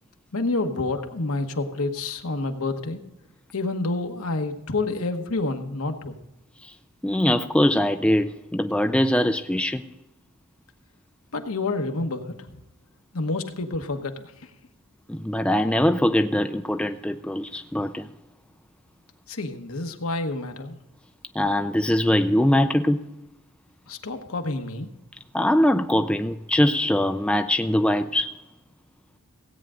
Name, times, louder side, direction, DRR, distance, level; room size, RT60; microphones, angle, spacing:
voice 1, 0.3-3.0 3.5-6.2 11.3-12.3 13.1-14.5 19.3-20.8 23.9-24.9, left 2 dB, 80° left, 1.2 m, -28 dB
voice 2, 7.0-9.8 15.1-18.1 21.4-23.1 25.3-28.3, left 1 dB, 5° left, 0.4 m, -22 dB
16.5 x 8.9 x 3.7 m
head